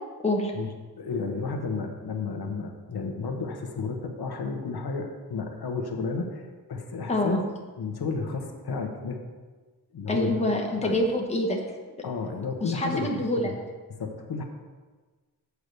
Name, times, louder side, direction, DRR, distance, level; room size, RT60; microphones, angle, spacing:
voice 1, 1.0-7.4 7.8-9.2 9.9-10.4 10.8-11.0 12.0-13.1 13.4-13.6 13.9-14.4, left 4 dB, 90° left, 4 dB, 1.1 m, -32 dB
voice 2, 7.1-7.4 10.1-11.6 12.6-13.5, left 1 dB, 15° left, 0 dB, 1.1 m, -26 dB
8.2 x 4.8 x 6.8 m, 1.4 s
wide cardioid pair, 165°, 37 cm